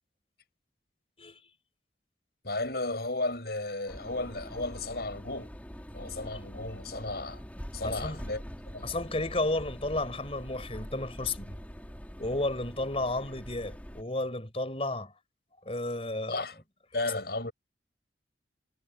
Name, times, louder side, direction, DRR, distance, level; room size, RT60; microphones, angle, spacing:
voice 1, 2.4-5.5 5.9-7.4 7.7-8.9 16.3-16.6 16.9-17.5, left 2 dB, 60° left, 6.6 m, -34 dB
sound 1, 3.9-14.0, equal, 10° left, 3.6 m, -44 dB
voice 2, 7.8-8.2 8.8-11.6 12.2-15.1 15.6-16.4, left 2 dB, 35° left, 4.7 m, -32 dB
head